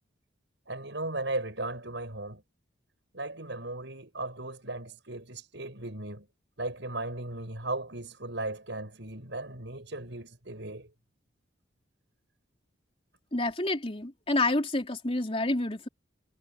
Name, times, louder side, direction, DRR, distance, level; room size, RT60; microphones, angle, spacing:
voice 1, 0.7-2.4 3.1-6.3 6.6-10.9, right 2 dB, 70° right, 6.4 m, -36 dB
voice 2, 13.3-15.9, left 2 dB, 30° left, 3.6 m, -28 dB
head